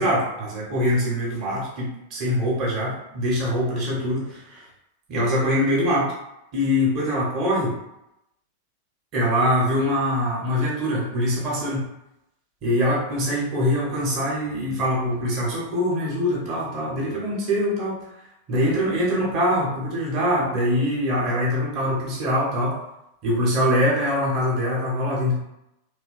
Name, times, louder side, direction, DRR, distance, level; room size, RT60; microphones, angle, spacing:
voice 1, 0.0-4.6 5.1-6.1 6.5-7.8 9.1-11.9 12.6-18.0 18.5-22.8 23.2-25.4, equal, 35° right, -5 dB, 1.0 m, -23 dB
2.9 x 2.1 x 2.5 m, 0.84 s
figure-of-eight pair, 90°, 0 cm